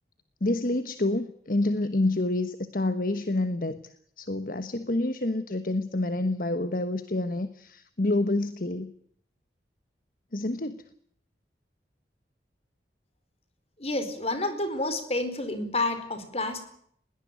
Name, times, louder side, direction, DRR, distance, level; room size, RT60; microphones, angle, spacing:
voice 1, 0.4-3.8 4.2-8.9 10.3-10.8, left 2 dB, 50° left, 11 dB, 1.2 m, -28 dB
voice 2, 13.8-16.6, left 2 dB, 35° left, 9 dB, 4.5 m, -29 dB
21.0 x 18.0 x 9.3 m, 0.66 s
head